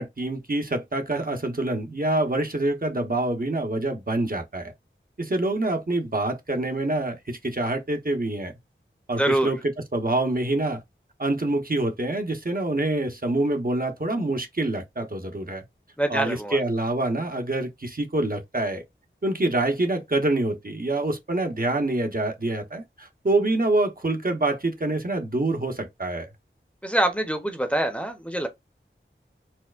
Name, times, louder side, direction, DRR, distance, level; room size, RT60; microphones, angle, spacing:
voice 1, 0.0-4.7 5.2-8.5 9.1-9.6 9.9-10.8 11.2-15.6 16.1-18.8 19.2-26.3, right 2 dB, 45° right, 0.9 m, -26 dB
voice 2, 9.2-9.5 16.0-16.6 26.8-28.5, right 1 dB, 5° left, 0.8 m, -25 dB
4.3 x 2.1 x 2.4 m
wide cardioid pair, 40°, 21 cm